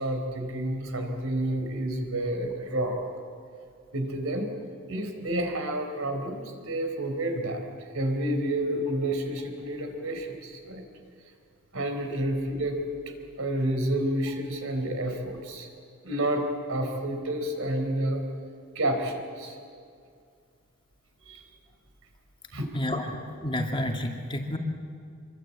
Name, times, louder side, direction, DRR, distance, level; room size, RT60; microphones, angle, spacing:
voice 1, 0.0-3.0 3.9-4.5 4.9-7.7 7.9-10.8 11.7-12.8 13.4-15.7 16.0-18.3 18.7-19.6 21.2-21.4 22.5-22.7, right 1 dB, 70° right, 5 dB, 4.2 m, -29 dB
voice 2, 22.7-24.6, left 1 dB, 25° left, 2 dB, 2.4 m, -30 dB
25.5 x 24.0 x 8.6 m, 2.3 s
head